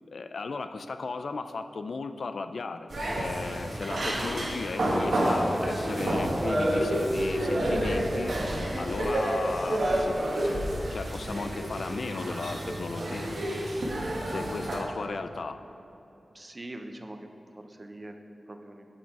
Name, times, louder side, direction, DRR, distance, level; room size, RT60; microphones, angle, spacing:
voice 1, 0.1-10.2 10.4-13.3 14.3-15.6, left 4 dB, 70° left, 9 dB, 0.3 m, -36 dB
sound 1, 2.9-14.8, right 1 dB, 70° right, 1.4 m, -29 dB
voice 2, 16.3-17.3 17.6-18.2 18.5-18.9, right 1 dB, 25° right, 5 dB, 0.5 m, -43 dB
8.7 x 5.3 x 4.6 m, 2.9 s
wide cardioid pair, 105°, 0 cm